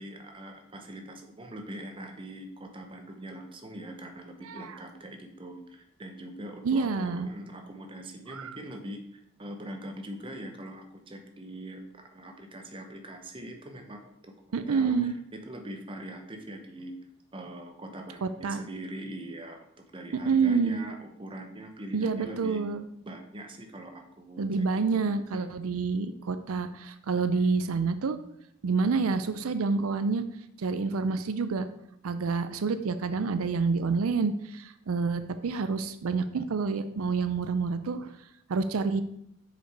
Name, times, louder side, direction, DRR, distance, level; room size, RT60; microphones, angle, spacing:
voice 1, 0.0-14.3 14.7-16.9 17.3-22.6 23.0-24.6 24.9-25.4 27.3-27.6, right 1 dB, 25° right, 4 dB, 0.8 m, -42 dB
voice 2, 4.4-4.8 6.6-7.3 8.3-8.6 14.5-15.1 18.2-18.6 20.2-20.9 21.9-22.8 24.4-28.2 28.6-30.2 30.6-31.7 32.0-38.1 38.5-39.0, right 4 dB, 85° right, 11 dB, 0.5 m, -28 dB
6.5 x 5.1 x 4.6 m, 0.73 s
head